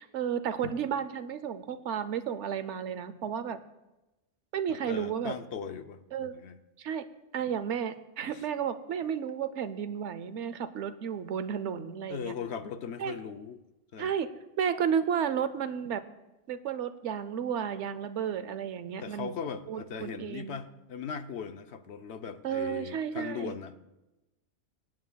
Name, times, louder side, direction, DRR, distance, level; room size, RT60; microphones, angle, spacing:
voice 1, 0.0-3.6 4.5-5.3 6.1-6.3 6.8-7.0 7.3-12.3 13.0-13.1 14.0-14.3 14.6-16.0 16.5-19.3 19.7-20.6 22.4-23.5, right 8 dB, 80° right, 13 dB, 1.0 m, -32 dB
voice 2, 4.7-6.6 12.1-13.6 13.9-14.1 19.0-23.8, left 6 dB, 70° left, 9 dB, 1.0 m, -39 dB
25.0 x 9.4 x 2.3 m, 1.0 s
omnidirectional pair, 1.2 m